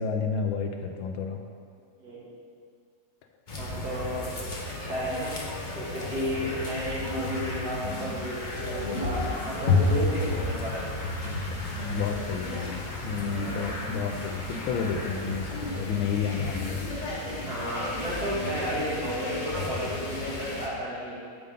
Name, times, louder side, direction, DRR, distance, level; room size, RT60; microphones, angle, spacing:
voice 1, 0.0-1.4 11.2-16.9, left 6 dB, 80° left, 4 dB, 1.4 m, -31 dB
voice 2, 2.0-2.3 3.5-5.4 5.7-11.0 13.2-13.7 17.5-21.2, equal, 50° right, -7 dB, 2.4 m, -33 dB
sound 1, 3.5-20.7, left 2 dB, 40° left, 0.6 m, -32 dB
8.0 x 5.3 x 5.0 m, 2.2 s
omnidirectional pair, 2.2 m